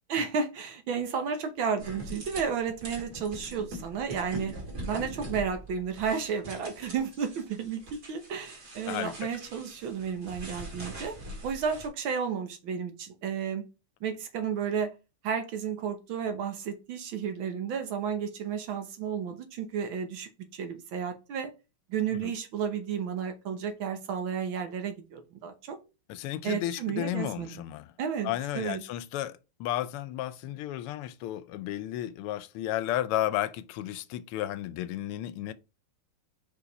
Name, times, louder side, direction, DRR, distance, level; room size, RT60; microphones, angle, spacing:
voice 1, 0.1-4.5 4.9-11.1 11.4-13.6 14.0-14.9 15.2-21.5 21.9-25.8 26.4-27.6 28.0-28.8, right 7 dB, 70° right, 1.7 m, -32 dB
sound 1, 1.8-11.9, right 1 dB, 50° right, 2.5 m, -43 dB
voice 2, 26.1-27.9 28.2-29.3 29.6-35.5, left 13 dB, 85° left, 1.5 m, -33 dB
5.1 x 4.8 x 4.0 m
omnidirectional pair, 2.4 m